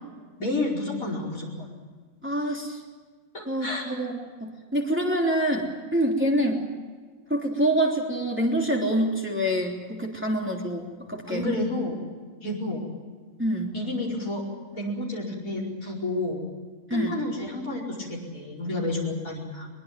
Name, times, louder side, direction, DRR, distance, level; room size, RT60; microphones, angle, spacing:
voice 1, 0.4-1.7 3.3-3.8 11.3-12.0 12.4-12.8 13.7-14.4 14.7-16.4 16.9-19.7, left 2 dB, 90° left, -2 dB, 5.5 m, -30 dB
voice 2, 2.2-2.8 3.5-6.6 7.3-11.5 13.4-13.7 16.9-17.2, right 1 dB, 10° right, -1 dB, 3.2 m, -26 dB
23.0 x 22.0 x 7.5 m, 1.5 s
omnidirectional pair, 1.4 m